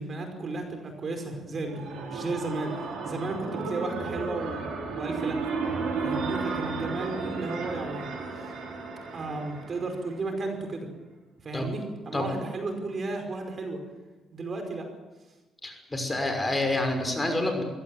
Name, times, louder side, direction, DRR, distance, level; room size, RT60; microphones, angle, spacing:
voice 1, 0.0-5.5 6.0-8.5 9.1-10.9 11.4-13.8 14.3-14.9, right 3 dB, 45° right, 5 dB, 5.2 m, -34 dB
sound 1, 1.4-10.2, right 4 dB, 75° right, 6.6 m, -33 dB
voice 2, 15.6-17.6, left 1 dB, 20° left, 4 dB, 6.0 m, -28 dB
22.0 x 17.0 x 9.4 m, 1.1 s
cardioid pair, 90°, 0 cm